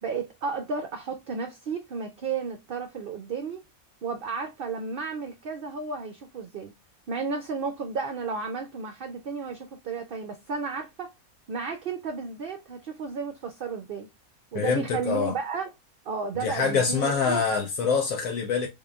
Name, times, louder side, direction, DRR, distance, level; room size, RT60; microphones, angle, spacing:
voice 1, 0.0-3.6 4.0-6.7 7.1-11.1 11.5-14.1 14.5-15.7 16.0-17.4, right 5 dB, 60° right, 0.5 m, -33 dB
voice 2, 14.5-15.3 16.4-18.7, left 5 dB, 80° left, 1.1 m, -25 dB
3.8 x 3.7 x 2.3 m
omnidirectional pair, 1.5 m